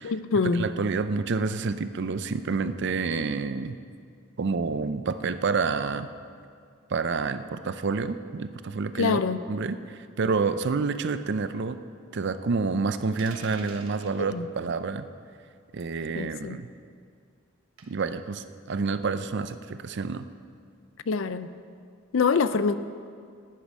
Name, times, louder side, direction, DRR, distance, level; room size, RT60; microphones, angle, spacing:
voice 1, 0.0-0.7 9.0-9.4 14.3-14.5 16.1-16.6 21.1-21.5 22.1-22.7, left 4 dB, 60° left, 13 dB, 0.4 m, -25 dB
voice 2, 0.6-3.8 4.4-6.1 6.9-9.2 9.5-11.8 12.1-15.1 15.7-16.7 17.8-20.2, right 4 dB, 55° right, 12 dB, 0.5 m, -28 dB
sound 1, 13.2-14.2 15.8-16.0 17.8-18.1, right 5 dB, 75° right, 1.2 m, -45 dB
10.5 x 9.6 x 6.3 m, 2.2 s
head